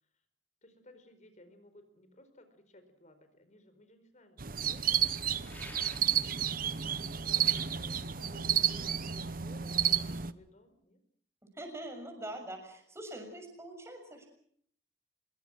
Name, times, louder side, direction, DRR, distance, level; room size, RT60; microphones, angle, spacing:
voice 1, 0.6-5.9 6.5-11.0, left 1 dB, 40° left, 9 dB, 4.5 m, -58 dB
sound 1, 4.4-10.3, right 9 dB, 50° right, 1.0 m, -31 dB
sound 2, 5.4-6.3 7.4-7.7, left 1 dB, 10° left, 3.3 m, -50 dB
voice 2, 11.5-14.3, right 1 dB, 15° right, 4 dB, 6.7 m, -43 dB
25.5 x 22.5 x 6.4 m, 0.64 s
head